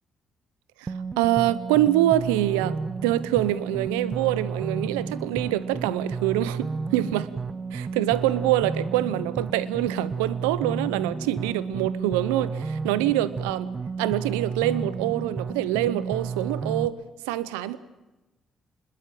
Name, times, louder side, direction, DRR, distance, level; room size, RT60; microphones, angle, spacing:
voice 1, 0.8-2.8 3.0-7.3 7.7-13.7 14.0-17.0 17.3-17.8, right 14 dB, 90° right, 0.8 m, -25 dB
sound 1, 0.9-16.9, right 5 dB, 40° right, 1.0 m, -32 dB
25.0 x 21.0 x 7.7 m
hypercardioid pair, 45°, 0 cm